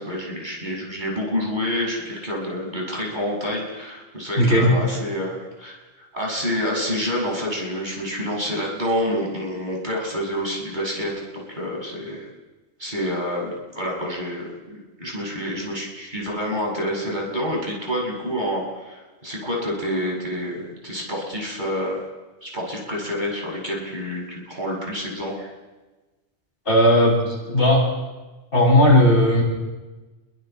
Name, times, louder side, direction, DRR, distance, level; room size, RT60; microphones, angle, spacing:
voice 1, 0.0-5.8 6.1-12.3 12.8-22.0 22.4-25.5, equal, 45° right, -3 dB, 6.7 m, -28 dB
voice 2, 4.4-4.7 26.6-27.9 28.5-29.4, left 1 dB, 55° left, -4 dB, 8.1 m, -16 dB
29.5 x 23.5 x 4.5 m, 1.2 s
omnidirectional pair, 1.1 m